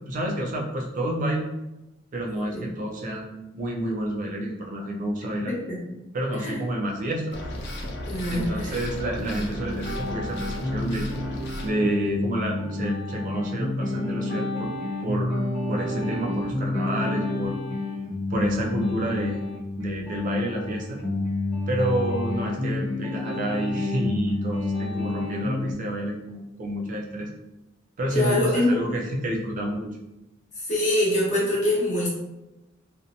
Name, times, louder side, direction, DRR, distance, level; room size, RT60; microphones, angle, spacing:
voice 1, 0.0-1.5 2.1-5.6 6.1-7.4 8.3-11.1 11.6-14.7 15.0-15.4 15.7-17.6 18.3-19.4 19.8-21.0 21.7-27.3 28.0-30.0, right 1 dB, 40° right, -1 dB, 0.3 m, -29 dB
voice 2, 5.4-5.8 6.4-6.6 8.1-8.8 28.1-28.8 30.6-32.1, left 1 dB, 35° left, -6 dB, 0.9 m, -24 dB
sound 1, 7.3-11.7, left 1 dB, 55° left, 0.5 m, -34 dB
sound 2, 9.2-25.7, left 2 dB, 5° right, 0.7 m, -29 dB
2.7 x 2.0 x 2.6 m, 0.95 s
head